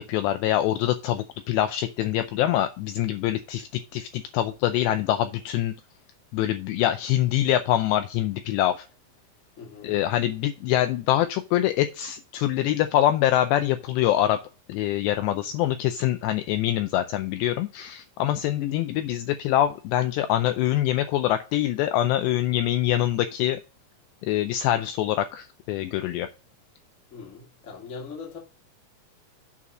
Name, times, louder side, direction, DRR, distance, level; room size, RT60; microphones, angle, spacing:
voice 1, 0.0-5.7 6.3-8.9 9.8-14.4 14.7-23.6 24.2-26.3, left 12 dB, 85° left, 2.5 m, -24 dB
voice 2, 9.6-9.9 27.1-28.4, left 5 dB, 40° left, 1.1 m, -40 dB
8.5 x 4.2 x 6.1 m
omnidirectional pair, 5.5 m